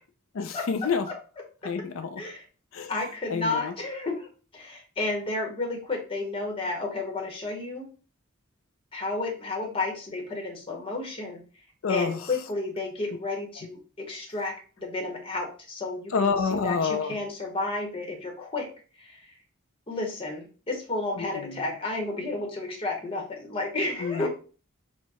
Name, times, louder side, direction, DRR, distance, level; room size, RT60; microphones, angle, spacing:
voice 1, 0.3-1.1 1.6-2.2 2.7-2.9 3.3-3.7 11.8-12.2 16.1-17.2 21.2-21.6 24.0-24.3, left 5 dB, 70° left, 0.4 m, -28 dB
voice 2, 2.9-7.9 8.9-11.6 11.9-19.4 19.9-24.3, left 2 dB, 25° left, 0.9 m, -32 dB
4.5 x 2.1 x 4.2 m
head